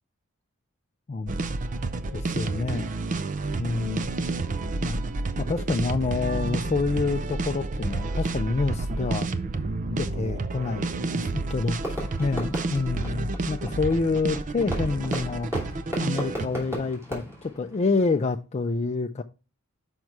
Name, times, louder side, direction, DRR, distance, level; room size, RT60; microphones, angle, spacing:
sound 1, 1.3-16.5, right 3 dB, 40° right, 0.5 m, -30 dB
voice 1, 2.1-2.9 3.6-4.1 4.8-5.0 5.4-9.3 9.9-15.5 16.0-19.2, left 3 dB, 30° left, 0.4 m, -28 dB
Fireworks, 11.8-18.3, equal, 10° right, 2.7 m, -36 dB
6.1 x 5.4 x 4.6 m
head